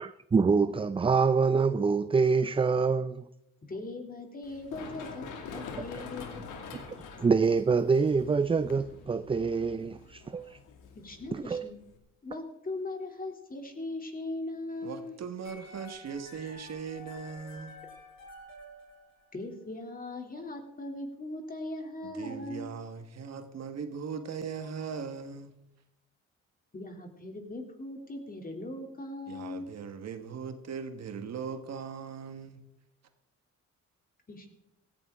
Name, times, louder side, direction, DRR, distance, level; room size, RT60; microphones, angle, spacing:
voice 1, 0.0-3.2 6.7-6.8 7.2-10.6 11.3-11.7, right 5 dB, 20° right, 0.5 m, -26 dB
voice 2, 3.7-6.5 10.9-11.8 12.2-15.1 19.3-22.7 26.7-29.7 34.3-34.5, left 2 dB, 30° left, 3.0 m, -39 dB
Run, 4.4-12.0, left 5 dB, 90° left, 2.4 m, -45 dB
voice 3, 14.8-17.8 22.0-25.5 29.3-32.6, right 6 dB, 60° right, 1.6 m, -39 dB
sound 1, 15.4-19.6, left 2 dB, 65° left, 6.3 m, -50 dB
16.5 x 15.5 x 3.7 m
cardioid pair, 90°, 30 cm